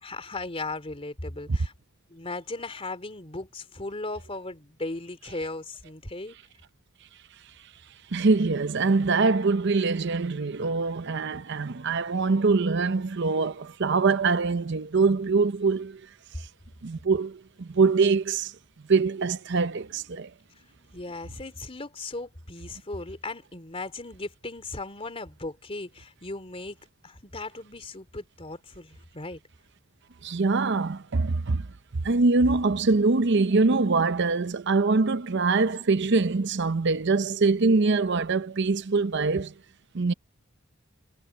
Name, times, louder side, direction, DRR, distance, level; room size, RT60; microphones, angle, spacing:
voice 1, 0.0-1.7 2.1-6.4 20.9-26.8 27.0-29.4, left 2 dB, 30° left, 3.3 m, -37 dB
voice 2, 8.1-16.0 16.8-18.5 18.9-20.3 30.2-31.7 32.0-39.5 39.9-40.1, right 4 dB, 60° right, 0.7 m, -23 dB
head